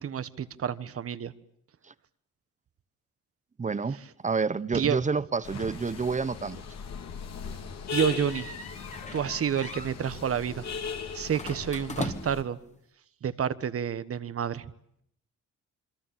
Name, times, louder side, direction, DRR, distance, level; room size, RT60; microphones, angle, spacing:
voice 1, 0.0-1.3 4.7-5.0 7.9-8.5 9.1-10.6 11.1-12.6 13.2-14.6, right 8 dB, 50° right, 1.3 m, -29 dB
voice 2, 3.6-4.0 4.2-6.6, right 4 dB, 25° right, 1.0 m, -28 dB
sound 1, 5.4-12.4, left 6 dB, 60° left, 3.0 m, -38 dB
sound 2, 8.1-9.3 9.5-9.9 11.3-12.5, left 3 dB, 25° left, 2.3 m, -39 dB
26.5 x 23.5 x 8.8 m
cardioid pair, 90°, 30 cm